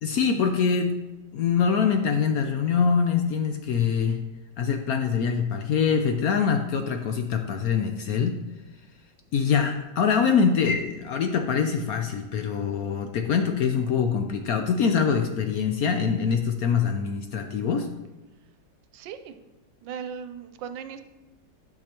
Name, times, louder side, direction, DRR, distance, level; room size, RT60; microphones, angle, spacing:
voice 1, 0.0-1.0 1.3-4.2 4.6-8.4 9.3-17.9, left 6 dB, 70° left, 5 dB, 0.9 m, -24 dB
voice 2, 18.9-19.3 19.8-21.0, right 7 dB, 85° right, 10 dB, 1.3 m, -37 dB
11.5 x 6.0 x 2.9 m, 1.1 s
omnidirectional pair, 2.0 m